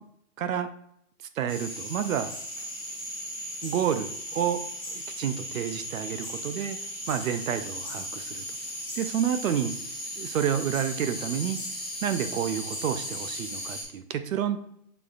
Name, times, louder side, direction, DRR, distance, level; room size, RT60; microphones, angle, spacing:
voice 1, 0.4-0.7 1.4-2.3 3.6-4.6 4.9-6.8 7.1-8.4 9.0-11.6 12.0-14.7, right 9 dB, 70° right, 10 dB, 0.6 m, -29 dB
sound 1, 1.5-13.8, equal, 5° right, 1.2 m, -37 dB
6.9 x 2.4 x 2.4 m, 0.71 s
hypercardioid pair, 170°, 42 cm